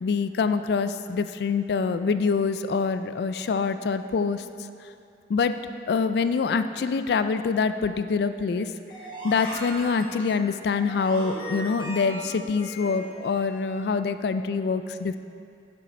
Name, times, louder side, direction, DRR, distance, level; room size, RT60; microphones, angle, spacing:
voice 1, 0.0-4.4 5.3-5.5 5.9-8.7 9.2-15.2, left 5 dB, 65° left, 11 dB, 0.3 m, -25 dB
sound 1, 8.9-13.8, right 1 dB, 25° left, 1.3 m, -38 dB
7.1 x 6.7 x 4.2 m, 2.4 s
head